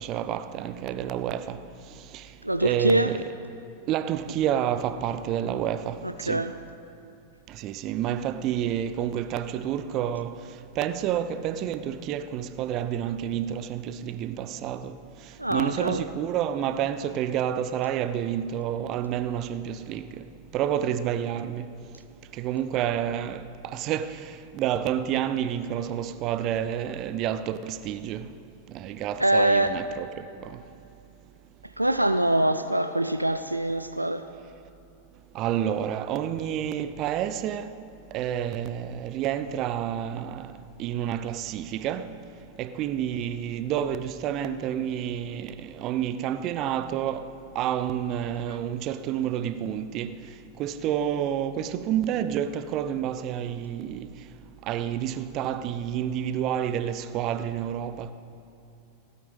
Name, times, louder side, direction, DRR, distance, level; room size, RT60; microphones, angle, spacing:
voice 1, 0.0-1.6 2.6-3.2 3.9-6.4 7.6-10.3 10.8-14.9 15.5-20.1 20.5-21.7 22.4-23.4 23.7-24.1 24.5-28.3 28.7-30.2 35.3-37.7 38.1-40.5 40.8-42.1 42.6-47.3 47.5-50.2 50.6-54.1 54.7-58.1, right 10 dB, 35° right, 0.7 m, -29 dB
voice 2, 2.4-3.1 6.0-6.5 15.4-16.0 29.2-29.8 31.8-34.2, right 1 dB, 85° right, 0.5 m, -24 dB
17.0 x 8.4 x 9.0 m
figure-of-eight pair, 90°, 0 cm